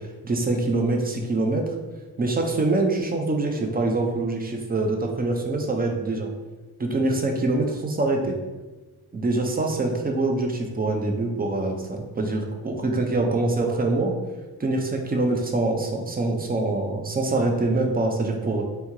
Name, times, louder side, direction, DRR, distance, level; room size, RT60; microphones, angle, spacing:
voice 1, 0.2-1.7 2.2-6.3 6.8-8.4 9.1-14.1 14.6-18.6, right 2 dB, 25° right, 2 dB, 0.5 m, -24 dB
3.4 x 2.8 x 3.0 m, 1.2 s
cardioid pair, 90°, 37 cm